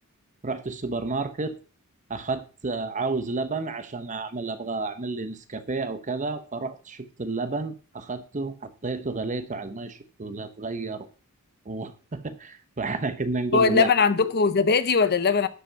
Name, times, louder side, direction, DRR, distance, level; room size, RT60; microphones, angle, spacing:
voice 1, 0.4-1.6 2.1-11.1 11.7-13.9, right 3 dB, 35° right, 0.9 m, -31 dB
voice 2, 13.5-15.5, left 5 dB, 45° left, 0.7 m, -20 dB
11.5 x 5.1 x 5.7 m
head